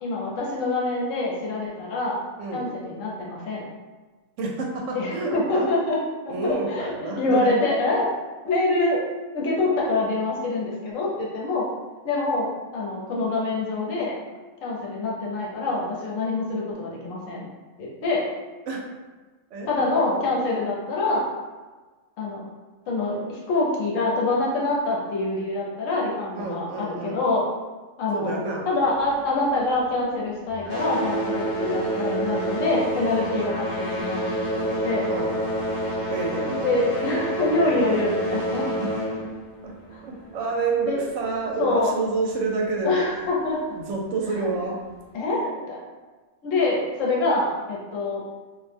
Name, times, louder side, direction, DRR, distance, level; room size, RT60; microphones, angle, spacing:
voice 1, 0.0-2.2 2.5-3.6 4.9-6.0 6.2-9.0 9.3-11.7 12.0-12.5 12.7-14.2 14.6-17.5 17.8-18.2 19.6-21.3 22.2-22.4 22.9-27.4 28.0-34.2 34.6-35.1 36.6-38.6 39.9-40.0 40.8-41.0 41.6-41.9 42.8-43.6 44.4-44.5 45.1-45.8 46.4-48.2, left 2 dB, 80° left, -3 dB, 1.1 m, -25 dB
voice 2, 4.4-5.7 6.3-7.5 18.7-18.8 19.5-20.0 26.3-27.2 28.1-28.7 35.1-35.4 36.1-36.7 38.8-39.3 39.6-39.7 40.0-43.0 43.7-44.8, right 3 dB, 75° right, -1 dB, 0.9 m, -29 dB
sound 1, 28.8-30.2 30.5-40.8 41.7-41.8 42.4-42.5 43.2-43.3, right 1 dB, 20° left, 0.8 m, -28 dB
2.4 x 2.1 x 3.3 m, 1.3 s
omnidirectional pair, 1.3 m